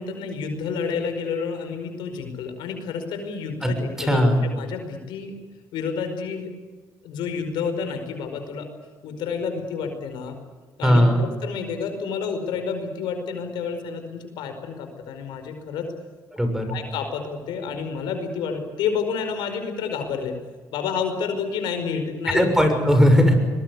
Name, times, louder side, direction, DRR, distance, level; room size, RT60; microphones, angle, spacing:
voice 1, 0.0-5.3 5.7-6.5 7.0-8.7 9.0-10.4 10.8-15.9 16.7-20.4 20.7-22.5, left 6 dB, 85° left, 6 dB, 5.0 m, -29 dB
voice 2, 4.0-4.4 10.8-11.2 16.3-16.7 22.3-23.3, equal, 5° right, 6 dB, 6.5 m, -18 dB
23.0 x 21.0 x 8.3 m, 1.4 s
cardioid pair, 85°, 8 cm